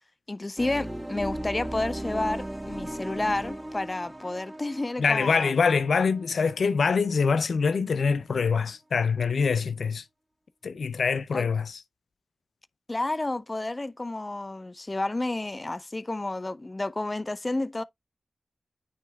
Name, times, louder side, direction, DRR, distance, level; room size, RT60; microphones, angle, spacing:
voice 1, 0.3-5.5 11.3-11.5 12.9-17.8, left 2 dB, 35° left, 0.6 m, -30 dB
sound 1, 0.6-7.4, right 1 dB, 20° right, 1.8 m, -37 dB
voice 2, 5.0-10.0 10.6-11.8, left 5 dB, 85° left, 0.5 m, -24 dB
9.5 x 3.3 x 3.4 m
cardioid pair, 45°, 0 cm